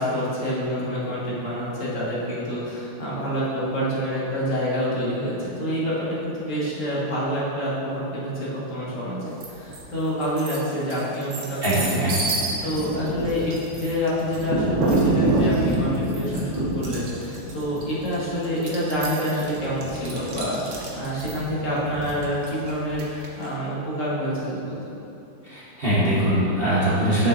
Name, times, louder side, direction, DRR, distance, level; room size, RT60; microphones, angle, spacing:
voice 1, 0.0-12.1 12.6-25.0, equal, 45° left, -8 dB, 1.7 m, -27 dB
sound 1, 9.4-9.8 10.2-23.5, right 2 dB, 50° right, 1.0 m, -27 dB
voice 2, 11.6-12.3 25.4-27.3, right 1 dB, 35° right, -10 dB, 1.1 m, -22 dB
7.6 x 6.3 x 2.6 m, 2.7 s
omnidirectional pair, 2.1 m